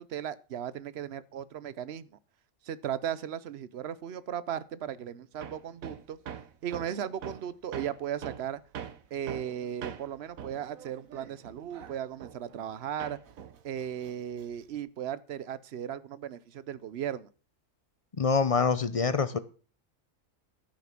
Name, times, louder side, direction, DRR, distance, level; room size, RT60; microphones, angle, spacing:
voice 1, 0.0-2.1 2.6-6.2 6.6-8.6 9.1-13.2 13.6-17.3, right 9 dB, 60° right, 0.9 m, -36 dB
Hammer, 5.4-12.7 13.0-14.8, right 8 dB, 85° right, 1.4 m, -44 dB
voice 2, 18.2-19.4, left 5 dB, 40° left, 0.5 m, -25 dB
13.0 x 5.9 x 5.9 m
omnidirectional pair, 1.4 m